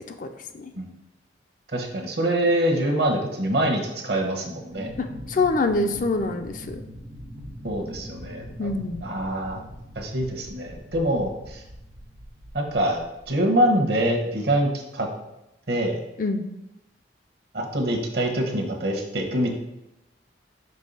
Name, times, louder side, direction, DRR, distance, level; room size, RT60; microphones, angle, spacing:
voice 1, 1.7-4.9 7.6-8.7 9.0-9.6 9.9-11.6 12.5-13.0 13.3-15.1 15.7-16.0 17.5-19.5, right 1 dB, 60° right, 2 dB, 1.1 m, -25 dB
sound 1, 4.7-13.3, equal, 85° right, 1.3 m, -41 dB
voice 2, 5.0-6.8 8.6-9.0 16.2-16.4, left 3 dB, 45° left, 7 dB, 0.4 m, -25 dB
5.4 x 3.2 x 5.4 m, 0.91 s
head